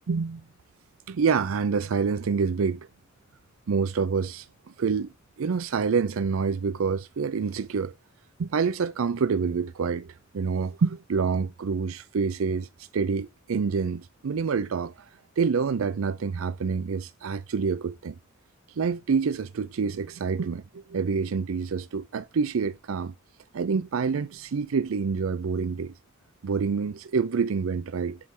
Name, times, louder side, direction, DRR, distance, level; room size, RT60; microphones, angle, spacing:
voice 1, 0.1-0.4 1.1-2.9 3.7-4.5 4.8-5.1 5.4-7.9 8.4-15.1 15.4-18.2 18.8-23.1 23.5-25.9 26.4-28.2, right 5 dB, 70° right, 0.5 m, -27 dB
7.7 x 3.3 x 6.0 m
head